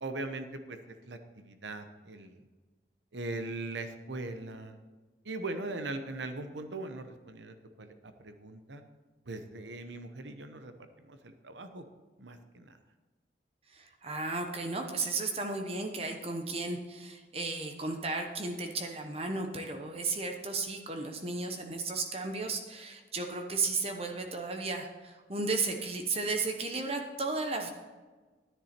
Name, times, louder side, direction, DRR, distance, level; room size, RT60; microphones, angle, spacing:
voice 1, 0.0-2.3 3.1-4.8 5.2-8.8 9.3-10.7 11.0-11.8 12.2-12.8, right 2 dB, 85° right, 8 dB, 0.9 m, -40 dB
voice 2, 13.7-27.7, right 3 dB, 35° right, 4 dB, 0.9 m, -34 dB
10.5 x 10.0 x 4.4 m, 1.3 s
head